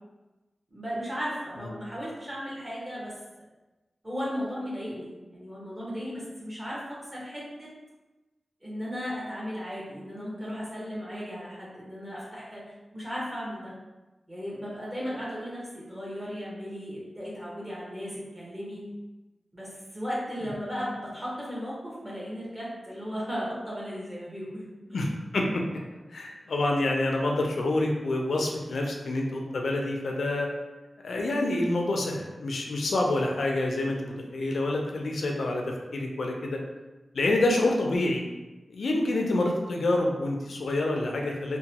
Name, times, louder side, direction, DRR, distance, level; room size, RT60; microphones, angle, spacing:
voice 1, 0.7-3.1 4.0-7.7 8.6-13.7 14.3-18.9 19.5-24.7, equal, 15° right, -7 dB, 0.9 m, -36 dB
voice 2, 25.3-25.8 26.1-30.5 31.0-36.6 37.1-38.2 38.7-41.6, left 2 dB, 90° left, 0 dB, 0.4 m, -27 dB
2.9 x 2.1 x 2.8 m, 1.1 s
wide cardioid pair, 120°, 0 cm